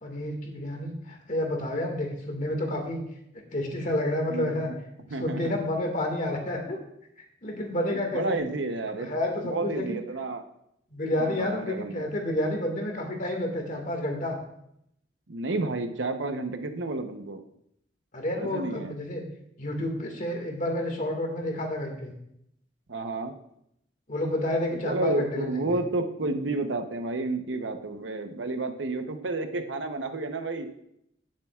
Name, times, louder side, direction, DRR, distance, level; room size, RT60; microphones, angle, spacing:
voice 1, 0.0-3.0 3.5-4.7 5.2-6.8 7.4-8.4 9.0-10.0 10.9-14.4 18.1-19.2 19.6-22.2 24.1-25.5, left 1 dB, 45° left, 2 dB, 1.9 m, -29 dB
voice 2, 4.3-4.8 5.1-5.5 8.1-9.1 9.5-10.4 11.2-12.1 15.3-17.4 18.4-19.0 22.9-23.4 24.7-30.7, right 2 dB, 80° right, 7 dB, 0.9 m, -31 dB
17.5 x 7.5 x 2.4 m, 0.75 s
head